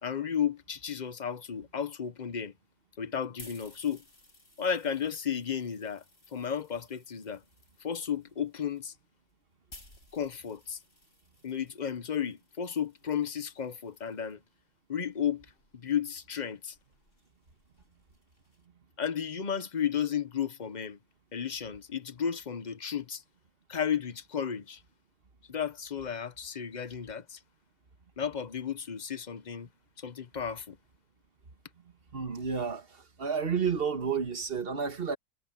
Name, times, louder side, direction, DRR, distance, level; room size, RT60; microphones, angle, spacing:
voice 1, 0.0-2.5 3.0-4.0 4.6-6.0 6.3-7.4 7.8-8.9 10.1-10.8 11.4-14.4 14.9-15.5 15.7-16.7 19.0-21.0 21.3-23.2 23.7-24.8 25.5-27.4 28.2-29.7 30.0-30.8, left 8 dB, 35° left, 0.8 m, -33 dB
sound 1, 3.0-14.3 15.1-18.7, left 1 dB, 50° left, 8.5 m, -58 dB
voice 2, 32.1-35.2, right 6 dB, 40° right, 1.6 m, -31 dB
omnidirectional pair, 1.6 m